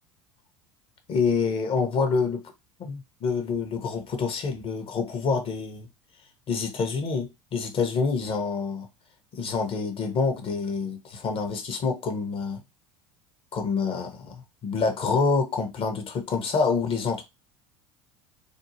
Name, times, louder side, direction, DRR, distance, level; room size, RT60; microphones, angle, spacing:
voice 1, 1.1-2.5 2.8-5.9 6.5-8.9 9.3-12.6 13.5-17.2, left 4 dB, 40° left, 0.8 m, -27 dB
2.7 x 2.2 x 2.7 m
hypercardioid pair, 75°, 14 cm